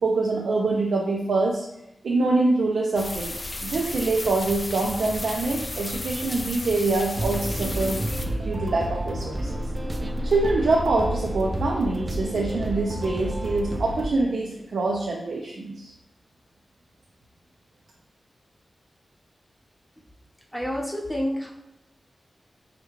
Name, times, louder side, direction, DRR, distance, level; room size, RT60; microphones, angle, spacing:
voice 1, 0.0-1.6 2.0-8.0 8.4-9.6 10.2-15.9, right 3 dB, 90° right, -2 dB, 0.5 m, -25 dB
sound 1, 3.0-8.3, left 1 dB, 30° left, 0.4 m, -33 dB
sound 2, 7.2-14.1, right 1 dB, 30° right, 0.4 m, -30 dB
voice 2, 20.5-21.5, equal, 10° left, -1 dB, 0.8 m, -28 dB
4.9 x 2.3 x 3.1 m, 0.85 s
wide cardioid pair, 80°, 0 cm